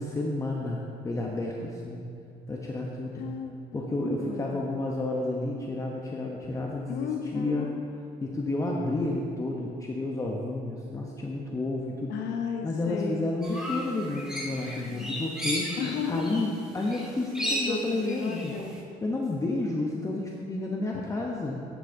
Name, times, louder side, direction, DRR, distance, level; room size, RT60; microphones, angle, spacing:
voice 1, 0.0-2.0 2.5-3.2 3.7-7.7 8.2-12.1 12.6-15.7 16.1-18.5 19.0-21.5, left 2 dB, 20° left, -2 dB, 0.7 m, -31 dB
voice 2, 3.1-4.6 6.4-6.5 6.9-7.8 12.1-13.3 14.9-15.3 15.8-16.4 17.4-18.8 20.9-21.0, left 5 dB, 80° left, 4 dB, 0.8 m, -34 dB
sound 1, 13.4-16.5 16.8-18.7, equal, 5° right, 1.6 m, -34 dB
10.5 x 7.9 x 2.6 m, 2.5 s
cardioid pair, 110°, 17 cm